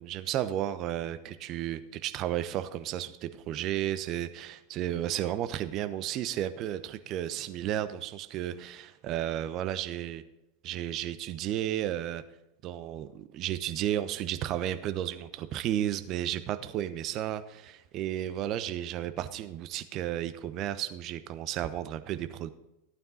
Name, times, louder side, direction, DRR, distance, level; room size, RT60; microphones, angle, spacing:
voice 1, 0.0-10.2 10.6-12.2 12.6-22.5, right 12 dB, 40° right, 12 dB, 0.9 m, -33 dB
14.5 x 9.1 x 4.1 m, 0.90 s
figure-of-eight pair, 85°, 0 cm